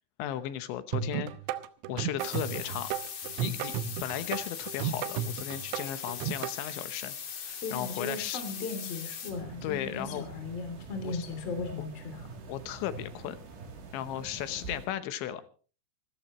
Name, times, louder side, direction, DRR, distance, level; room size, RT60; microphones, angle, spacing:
voice 1, 0.2-1.3 1.9-2.9 3.4-8.4 9.6-10.3 11.0-11.2 11.8-11.9 12.5-13.4 13.9-15.4, left 11 dB, 75° left, 11 dB, 3.1 m, -36 dB
sound 1, 0.9-6.6, right 10 dB, 80° right, 3.2 m, -34 dB
sound 2, 2.2-9.3, left 7 dB, 60° left, 5.1 m, -40 dB
voice 2, 7.6-12.3, left 4 dB, 35° left, 6 dB, 3.5 m, -37 dB
sound 3, 9.3-14.9, right 3 dB, 60° right, 4.8 m, -45 dB
26.5 x 13.5 x 3.1 m, 0.38 s
omnidirectional pair, 5.7 m